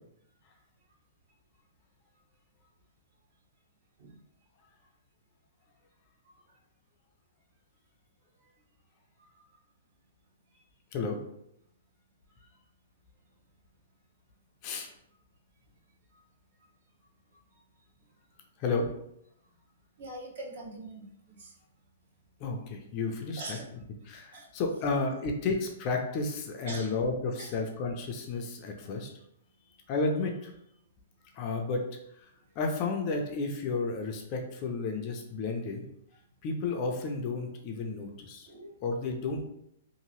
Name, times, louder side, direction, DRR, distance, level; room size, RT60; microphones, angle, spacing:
voice 1, 18.6-18.9 22.4-23.6 24.1-29.1 29.9-30.5 31.3-31.8 32.2-32.3 32.6-35.9 36.4-38.5 38.8-39.4, left 3 dB, 30° left, 2 dB, 0.4 m, -32 dB
voice 2, 20.0-21.5 23.4-23.6 24.3-24.5 26.7-26.9 27.4-27.5 33.9-34.0 38.5-38.8, right 2 dB, 55° right, -1 dB, 0.9 m, -42 dB
2.8 x 2.5 x 3.0 m, 0.76 s
hypercardioid pair, 165°, 0 cm